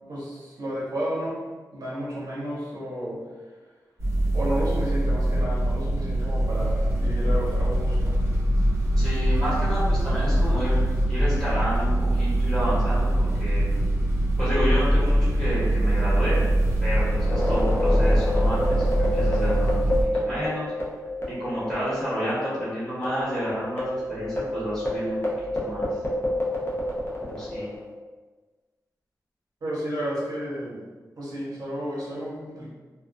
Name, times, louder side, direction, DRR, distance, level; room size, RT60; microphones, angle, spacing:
voice 1, 0.0-1.4 1.7-3.2 4.3-8.2 29.6-30.9 31.2-32.7, equal, 65° right, -7 dB, 0.8 m, -32 dB
sound 1, 4.0-20.0, right 1 dB, 40° right, 0.8 m, -23 dB
voice 2, 9.0-10.8 11.1-13.6 14.4-16.5 16.8-20.7 21.3-25.2 25.5-25.9 27.2-27.7, equal, 10° left, -12 dB, 1.2 m, -30 dB
sound 2, 17.2-22.0 22.3-22.4 23.0-27.8, left 1 dB, 35° left, 0.5 m, -28 dB
2.4 x 2.2 x 2.5 m, 1.3 s
wide cardioid pair, 145°, 7 cm